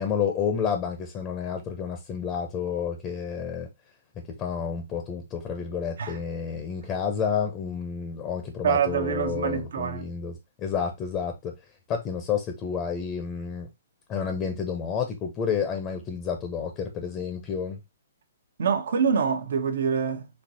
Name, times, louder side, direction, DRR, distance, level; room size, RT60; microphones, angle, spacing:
voice 1, 0.0-3.7 4.2-11.5 11.9-13.7 14.1-17.8, left 7 dB, 25° left, 0.6 m, -30 dB
voice 2, 8.6-10.1 18.6-20.3, right 7 dB, 70° right, 0.8 m, -25 dB
4.4 x 2.7 x 2.7 m
hypercardioid pair, 145°, 0 cm